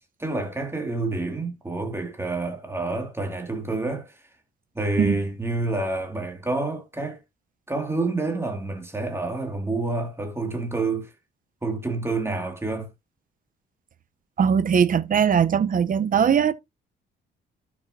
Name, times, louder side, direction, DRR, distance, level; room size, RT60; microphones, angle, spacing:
voice 1, 0.2-4.2 4.7-7.2 7.7-11.1 11.6-12.9, right 2 dB, 10° right, 2.4 m, -28 dB
voice 2, 14.4-16.5, right 7 dB, 45° right, 0.8 m, -20 dB
12.5 x 6.1 x 2.7 m
cardioid pair, 90°, 20 cm